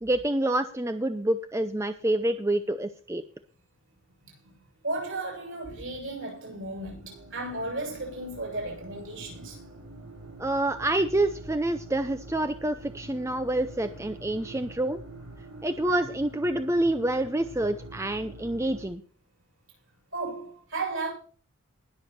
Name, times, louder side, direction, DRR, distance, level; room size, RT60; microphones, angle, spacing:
voice 1, 0.0-3.2 10.4-15.0 15.6-19.0, right 1 dB, 10° right, 0.6 m, -27 dB
voice 2, 4.2-4.5 4.8-9.6 20.1-21.1, right 2 dB, 60° right, 8.0 m, -34 dB
sound 1, 7.0-18.9, right 2 dB, 85° right, 6.7 m, -45 dB
20.0 x 7.2 x 4.3 m
head